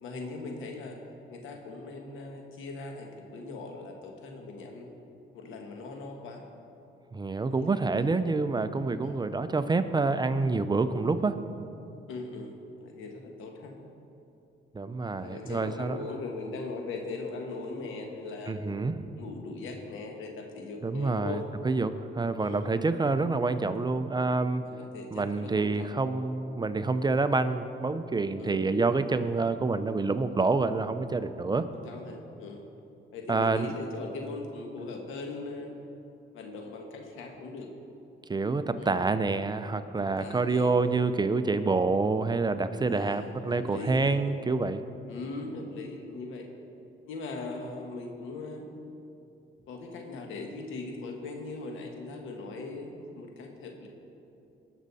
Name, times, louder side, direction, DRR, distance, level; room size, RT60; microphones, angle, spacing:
voice 1, 0.0-1.0 1.3-4.9 5.3-6.4 7.5-8.1 9.0-9.2 12.1-13.7 15.1-18.6 19.2-21.4 22.4-22.6 24.6-25.9 28.4-28.7 31.8-32.7 33.1-35.8 36.3-37.7 38.8-39.0 40.2-40.8 42.9-44.3 45.1-46.5 47.1-48.7 49.7-53.9, left 3 dB, 85° left, 2 dB, 1.5 m, -40 dB
voice 2, 7.1-11.4 14.7-16.1 18.5-19.2 20.8-24.6 25.1-31.7 33.3-33.7 38.3-44.8, right 3 dB, 20° right, 10 dB, 0.5 m, -27 dB
19.5 x 6.5 x 4.1 m, 2.8 s
cardioid pair, 90°, 20 cm